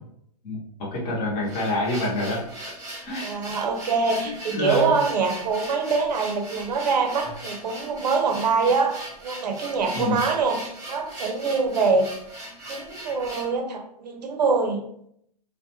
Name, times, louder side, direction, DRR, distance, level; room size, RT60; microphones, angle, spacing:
voice 1, 0.4-2.4 3.0-3.3 4.2-4.9 9.9-10.2, left 1 dB, 30° left, -5 dB, 0.7 m, -27 dB
sound 1, 1.2-13.6, right 1 dB, 15° right, 1.0 m, -39 dB
voice 2, 3.2-12.1 12.7-14.8, right 4 dB, 85° right, 4 dB, 0.6 m, -24 dB
2.4 x 2.1 x 2.7 m, 0.71 s
hypercardioid pair, 155°, 21 cm